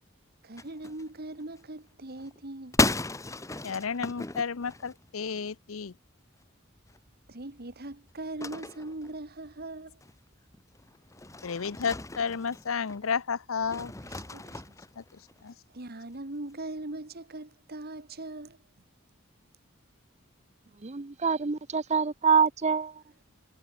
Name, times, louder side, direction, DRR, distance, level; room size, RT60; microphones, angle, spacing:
voice 1, 0.4-2.8 7.3-10.0 14.0-14.6 15.7-18.6, right 2 dB, 50° right, 1.9 m, -40 dB
sound 1, 0.6-1.6 1.9-5.5 5.9-6.1 6.4-6.5 6.7-13.1 13.6-15.5, left 2 dB, 15° left, 1.1 m, -35 dB
voice 2, 3.6-5.9 11.4-13.9 15.0-15.1 15.4-15.5, left 6 dB, 75° left, 0.7 m, -32 dB
voice 3, 20.8-22.9, right 6 dB, 35° right, 0.7 m, -25 dB
head